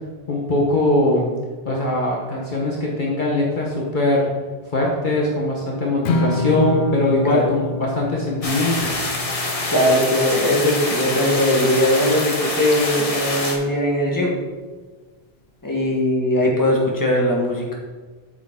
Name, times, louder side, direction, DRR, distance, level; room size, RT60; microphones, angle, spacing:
voice 1, 0.3-1.2 1.6-4.3 4.7-8.9, left 1 dB, 50° left, -3 dB, 1.3 m, -21 dB
Strum, 6.1-12.3, left 2 dB, 85° left, 1.0 m, -28 dB
sound 1, 8.4-13.6, left 2 dB, 35° left, 1.2 m, -25 dB
voice 2, 9.7-14.3 15.6-17.7, left 1 dB, 20° left, -2 dB, 1.6 m, -20 dB
8.3 x 6.4 x 3.7 m, 1.3 s
omnidirectional pair, 1.0 m